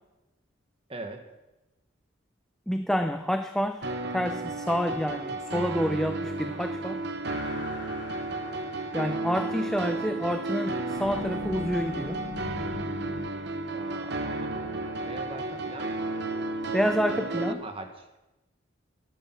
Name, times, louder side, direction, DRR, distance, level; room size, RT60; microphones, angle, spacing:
voice 1, 0.9-1.2 13.7-15.9 17.1-18.1, right 2 dB, 30° right, 5 dB, 1.5 m, -41 dB
voice 2, 2.7-7.0 8.9-12.2 16.7-17.6, equal, ahead, 8 dB, 0.4 m, -28 dB
sound 1, 3.8-17.5, right 2 dB, 55° right, 0.9 m, -33 dB
sound 2, 7.2-9.3 10.9-13.3, left 2 dB, 60° left, 1.6 m, -40 dB
14.0 x 12.5 x 5.9 m, 1.0 s
head